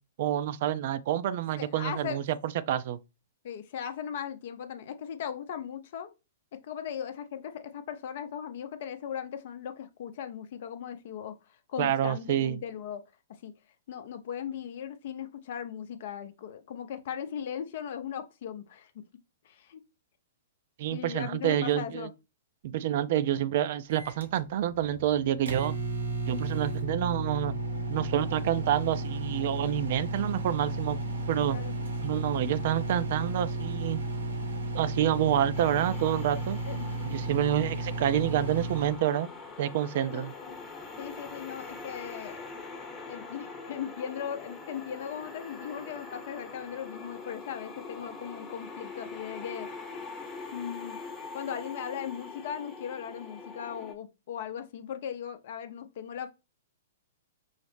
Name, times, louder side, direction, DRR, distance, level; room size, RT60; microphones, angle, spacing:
voice 1, 0.2-3.0 11.8-12.6 20.8-22.1 22.6-25.7 26.3-27.6 27.9-31.0 31.3-31.6 32.0-34.0 34.7-36.6 37.0-39.3 39.6-40.3, right 11 dB, 55° right, 0.4 m, -28 dB
voice 2, 1.6-2.2 3.4-6.1 6.5-13.0 13.4-13.5 13.9-19.0 19.4-19.8 20.9-22.1 31.5-31.8 36.7-36.9 40.1-40.6 41.0-42.4 43.1-49.7 50.5-51.0 51.3-56.3, left 8 dB, 55° left, 0.6 m, -38 dB
Microwave oven, 23.9-39.0, right 2 dB, 80° right, 1.0 m, -33 dB
sound 1, 35.5-53.9, left 4 dB, 25° left, 0.9 m, -43 dB
5.6 x 2.0 x 3.2 m
figure-of-eight pair, 115°, 0 cm